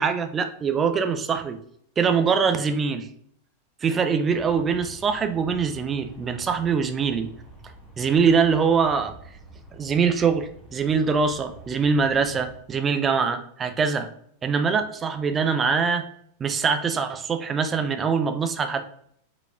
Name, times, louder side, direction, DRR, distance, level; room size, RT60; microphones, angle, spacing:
voice 1, 0.0-1.6 2.0-3.1 3.8-7.3 8.0-9.1 9.7-14.1 14.4-16.0 16.4-18.8, right 5 dB, 20° right, 7 dB, 0.6 m, -23 dB
Aircraft, 4.3-12.6, right 2 dB, ahead, 1.3 m, -47 dB
5.5 x 4.1 x 2.4 m, 0.68 s
figure-of-eight pair, 90°, 0 cm